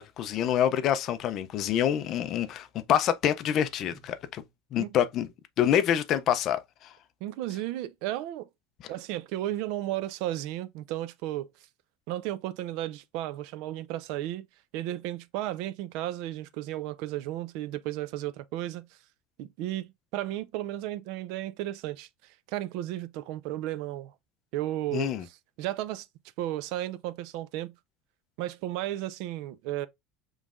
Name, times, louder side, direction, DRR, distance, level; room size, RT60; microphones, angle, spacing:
voice 1, 0.0-4.4 4.7-5.3 5.6-6.6 24.9-25.2, left 10 dB, 35° left, 0.4 m, -26 dB
voice 2, 7.2-8.5 8.9-11.5 12.1-14.5 14.7-18.9 19.4-24.1 24.5-26.1 26.4-27.7 28.4-29.9, right 14 dB, 55° right, 0.4 m, -34 dB
5.4 x 3.1 x 2.4 m
cardioid pair, 170°, 0 cm